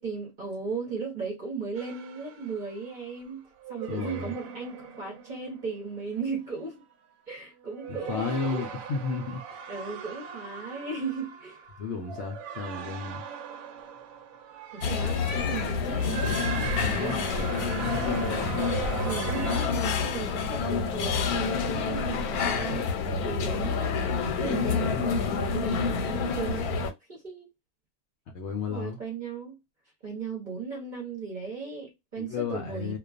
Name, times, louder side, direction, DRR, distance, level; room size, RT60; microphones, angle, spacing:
voice 1, 0.0-6.8 7.3-8.7 9.7-11.6 14.7-18.7 19.0-22.9 23.2-26.8 27.1-27.5 28.7-29.6 30.0-33.0, right 4 dB, 40° right, 0.8 m, -36 dB
sound 1, 1.8-3.1 3.6-6.1 6.6-6.9 7.7-19.7, right 7 dB, 75° right, 1.0 m, -40 dB
voice 2, 3.9-4.3 7.9-9.6 11.8-13.2 28.3-29.0 32.2-33.0, left 5 dB, 65° left, 0.7 m, -33 dB
sound 2, 14.8-26.9, left 5 dB, 85° left, 1.1 m, -28 dB
2.4 x 2.2 x 2.4 m
omnidirectional pair, 1.5 m